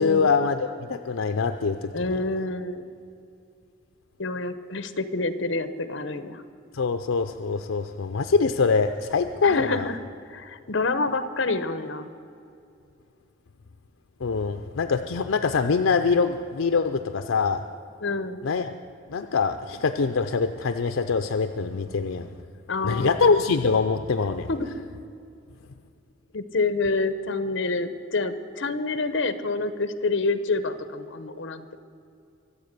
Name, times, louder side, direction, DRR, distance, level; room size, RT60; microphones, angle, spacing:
voice 1, 0.0-1.9 6.7-9.9 14.2-17.6 18.4-18.7 19.1-22.3 22.8-24.5, left 4 dB, 85° left, 8 dB, 0.5 m, -24 dB
voice 2, 1.9-2.8 4.2-6.4 9.4-10.0 10.2-12.1 18.0-18.4 22.7-23.3 24.5-24.7 26.3-31.7, left 3 dB, 70° left, 12 dB, 0.9 m, -27 dB
24.0 x 8.0 x 6.7 m, 2.6 s
head